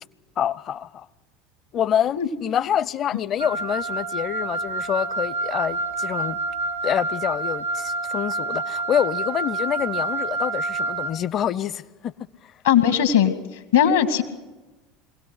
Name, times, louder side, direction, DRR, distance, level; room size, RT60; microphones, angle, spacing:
voice 1, 0.4-1.1 1.7-6.4 6.8-12.1 12.4-12.5, left 9 dB, 40° left, 0.7 m, -26 dB
Wind instrument woodwind instrument, 3.4-11.2, right 3 dB, 85° right, 1.2 m, -28 dB
voice 2, 12.6-13.3 13.7-14.2, left 9 dB, 70° left, 1.8 m, -18 dB
23.5 x 17.0 x 8.0 m
figure-of-eight pair, 70°, 0 cm